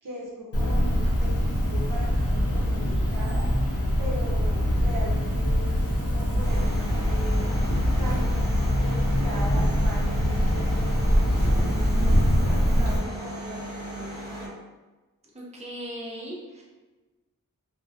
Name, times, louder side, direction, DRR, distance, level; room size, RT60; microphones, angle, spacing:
voice 1, 0.0-14.5, right 1 dB, 70° right, -4 dB, 0.7 m, -40 dB
Cricket, 0.5-13.0, equal, 45° left, 0.6 m, -23 dB
sound 1, 6.4-14.5, right 1 dB, 10° left, 0.9 m, -37 dB
voice 2, 15.3-16.6, equal, 20° right, -4 dB, 0.5 m, -38 dB
2.5 x 2.1 x 2.5 m, 1.2 s
wide cardioid pair, 60°, 33 cm